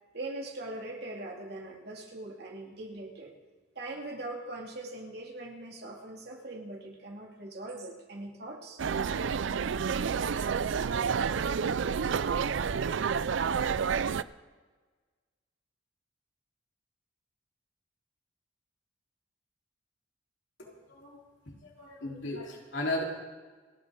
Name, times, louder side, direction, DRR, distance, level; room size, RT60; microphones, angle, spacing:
voice 1, 0.1-3.3 3.8-8.8, right 2 dB, 55° right, 0 dB, 2.5 m, -41 dB
sound 1, 8.8-14.2, right 6 dB, 75° right, 0.4 m, -29 dB
voice 2, 20.6-21.2 21.5-23.0, left 2 dB, 70° left, -3 dB, 3.7 m, -36 dB
29.5 x 10.5 x 3.8 m, 1.4 s
head